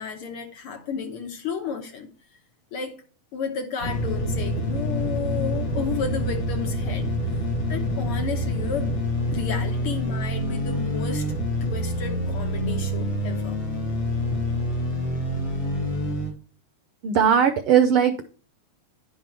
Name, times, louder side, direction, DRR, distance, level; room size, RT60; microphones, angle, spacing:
voice 1, 0.0-2.1 2.7-3.0 3.3-7.2 7.7-9.0 9.3-11.3 11.6-13.6, left 6 dB, 60° left, 1.6 m, -32 dB
sound 1, 3.8-16.3, equal, 40° left, 3.6 m, -27 dB
voice 2, 17.0-18.2, right 8 dB, 90° right, 1.2 m, -18 dB
11.0 x 5.7 x 4.4 m
omnidirectional pair, 3.3 m